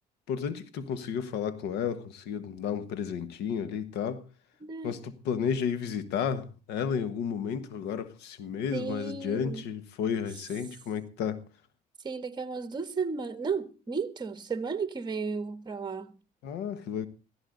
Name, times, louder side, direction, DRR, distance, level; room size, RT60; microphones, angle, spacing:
voice 1, 0.3-4.2 4.8-11.4 16.4-17.1, left 7 dB, 85° left, 1.4 m, -32 dB
voice 2, 4.6-5.0 8.7-9.6 12.0-16.1, right 5 dB, 25° right, 1.6 m, -34 dB
16.5 x 15.0 x 4.0 m
cardioid pair, 110°, 17 cm